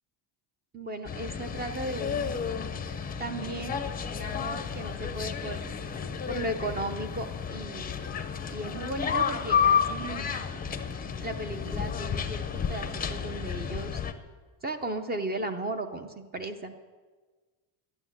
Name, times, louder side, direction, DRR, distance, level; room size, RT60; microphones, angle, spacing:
voice 1, 0.7-2.6 3.2-3.8 4.1-5.6 6.3-7.9 8.5-10.3 11.2-14.0 14.6-16.8, right 2 dB, 20° right, 7 dB, 0.7 m, -36 dB
sound 1, 1.1-14.1, left 7 dB, 20° left, 0.6 m, -31 dB
12.0 x 9.9 x 7.9 m, 1.4 s
cardioid pair, 155°, 49 cm